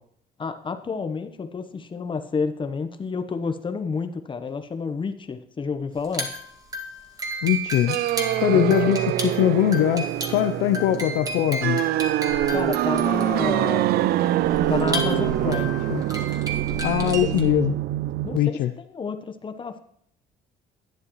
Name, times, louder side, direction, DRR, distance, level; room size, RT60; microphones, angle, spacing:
voice 1, 0.4-6.3 8.5-9.0 12.5-14.1 14.7-15.8 17.0-17.5 18.2-18.6 18.9-19.8, left 5 dB, 30° left, 8 dB, 1.0 m, -30 dB
sound 1, 6.0-17.5, right 2 dB, 20° right, 1.9 m, -33 dB
voice 2, 7.4-8.0 8.4-10.1 10.3-11.8 15.9-16.0 16.8-17.7 18.3-18.7, left 12 dB, 85° left, 8 dB, 0.6 m, -21 dB
sound 2, 7.9-18.4, right 14 dB, 65° right, 0.4 m, -25 dB
11.5 x 9.5 x 3.1 m, 0.66 s
cardioid pair, 110°, 17 cm